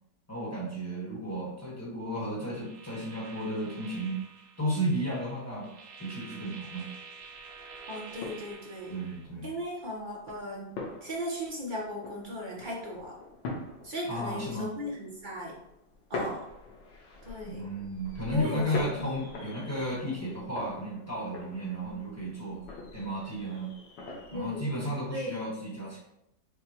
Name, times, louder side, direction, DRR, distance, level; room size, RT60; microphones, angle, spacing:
voice 1, 0.3-4.2 4.6-5.7 6.0-6.9 8.9-9.5 14.1-14.7 17.4-22.6 22.9-23.8 24.3-26.0, equal, 10° left, -6 dB, 0.9 m, -33 dB
sound 1, 2.5-9.2, right 4 dB, 65° right, 0.9 m, -49 dB
sound 2, 7.2-24.6, left 2 dB, 90° left, 1.5 m, -43 dB
voice 2, 7.9-9.0 9.4-10.7 11.0-13.2 13.8-15.6 16.1-16.5 17.3-17.6 18.3-19.1 24.3-24.7 25.1-25.4, equal, 45° right, -3 dB, 0.6 m, -37 dB
6.5 x 2.2 x 2.8 m, 0.80 s
omnidirectional pair, 1.9 m